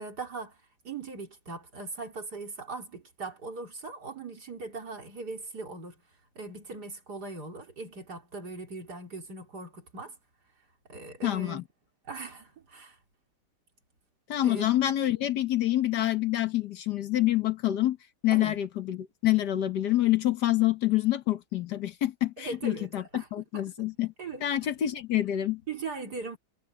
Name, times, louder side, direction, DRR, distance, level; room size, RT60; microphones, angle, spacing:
voice 1, 0.0-6.0 6.4-10.2 10.9-11.6 12.0-13.0 14.4-14.7 18.3-18.6 22.4-23.3 23.5-23.7 24.2-24.7 25.7-26.4, right 3 dB, 70° right, 4.0 m, -40 dB
voice 2, 11.2-11.6 14.3-18.0 18.2-24.1 24.4-25.6, left 14 dB, 75° left, 1.8 m, -27 dB
omnidirectional pair, 1.8 m